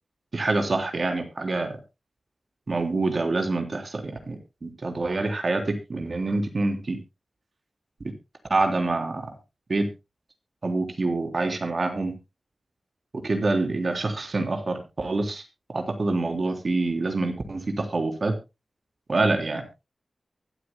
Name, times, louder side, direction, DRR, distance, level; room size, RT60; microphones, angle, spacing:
voice 1, 0.3-1.7 2.7-7.0 8.0-8.1 8.5-9.2 9.7-9.9 10.6-12.1 13.2-15.4 15.7-18.4 19.1-19.6, right 2 dB, 60° right, 5 dB, 3.4 m, -26 dB
23.5 x 8.4 x 2.2 m, 0.26 s
wide cardioid pair, 65°, 0 cm